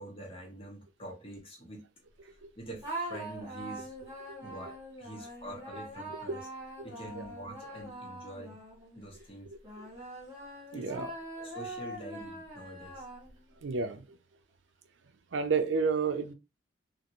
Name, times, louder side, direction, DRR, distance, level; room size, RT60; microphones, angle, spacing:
voice 1, 0.0-1.9 2.2-4.0 4.4-6.4 6.8-8.6 8.9-9.5 10.7-11.0 11.4-13.1, right 1 dB, 30° left, 1.1 m, -45 dB
sound 1, 2.8-9.0 9.6-13.5, right 1 dB, 15° right, 1.6 m, -43 dB
voice 2, 10.7-11.1 13.6-14.2 15.3-16.3, right 5 dB, 85° right, 0.5 m, -31 dB
2.9 x 2.5 x 2.6 m
head